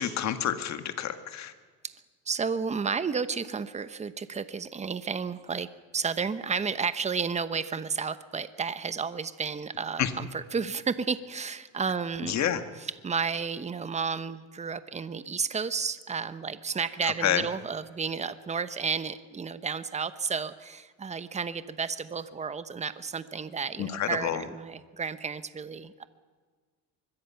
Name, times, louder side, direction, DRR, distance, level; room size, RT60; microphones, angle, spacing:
voice 1, 0.0-1.5 10.0-10.1 12.2-12.6 17.0-17.5 23.8-24.4, left 10 dB, 55° left, 9 dB, 1.9 m, -29 dB
voice 2, 2.3-12.5 13.0-26.0, right 5 dB, 20° right, 13 dB, 1.0 m, -32 dB
24.5 x 22.0 x 5.8 m, 1.5 s
cardioid pair, 130°, 34 cm